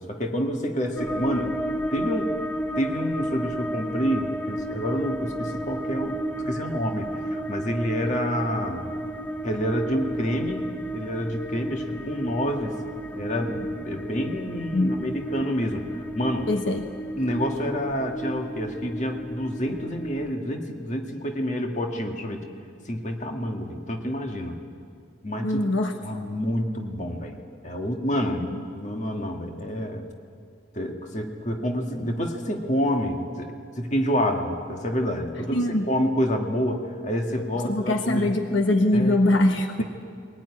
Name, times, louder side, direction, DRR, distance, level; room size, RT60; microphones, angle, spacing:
voice 1, 0.0-1.6 1.9-2.3 2.8-6.2 6.5-8.9 9.4-10.6 10.9-12.8 13.1-16.5 17.2-22.4 22.9-24.6 25.2-25.6 26.0-28.5 28.7-30.1 30.7-38.3 38.9-39.2 39.8-39.9, equal, 35° left, 3 dB, 1.8 m, -28 dB
sound 1, 1.0-20.4, right 1 dB, 10° left, 0.7 m, -32 dB
voice 2, 14.7-15.1 16.5-16.9 25.4-25.9 28.5-28.6 35.5-35.9 37.6-39.8, left 1 dB, 70° left, 6 dB, 1.1 m, -22 dB
21.0 x 18.0 x 9.8 m, 2.4 s
head